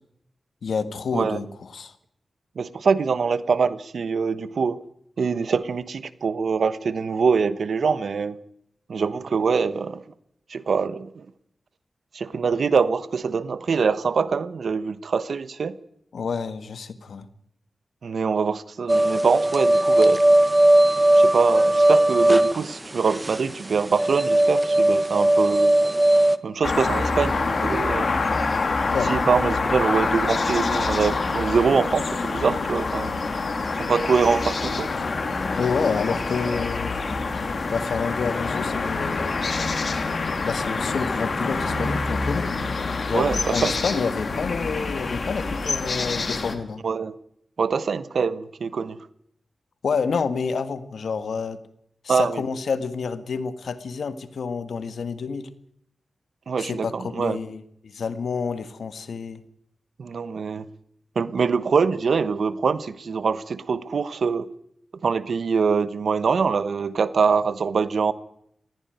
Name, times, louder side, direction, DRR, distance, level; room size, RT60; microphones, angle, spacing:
voice 1, 0.6-1.9 16.1-17.2 28.9-29.1 35.6-37.0 37.7-39.4 40.4-42.5 43.1-46.8 49.8-51.6 52.0-55.5 56.6-59.4, left 5 dB, 80° left, 11 dB, 1.7 m, -28 dB
voice 2, 2.6-4.8 5.2-8.4 8.9-10.0 10.5-11.3 12.1-15.7 18.0-20.2 21.1-25.7 26.4-28.1 29.1-33.1 33.8-34.9 43.1-43.8 46.8-47.1 47.6-49.1 52.1-52.4 56.5-57.4 60.0-60.7 61.1-64.5 65.0-68.1, right 5 dB, 75° right, 15 dB, 1.1 m, -24 dB
sound 1, 18.9-26.4, right 1 dB, 15° right, 1.3 m, -18 dB
sound 2, 26.6-46.5, left 3 dB, 55° left, 3.0 m, -26 dB
20.0 x 15.5 x 9.2 m, 0.74 s
wide cardioid pair, 105°, 0 cm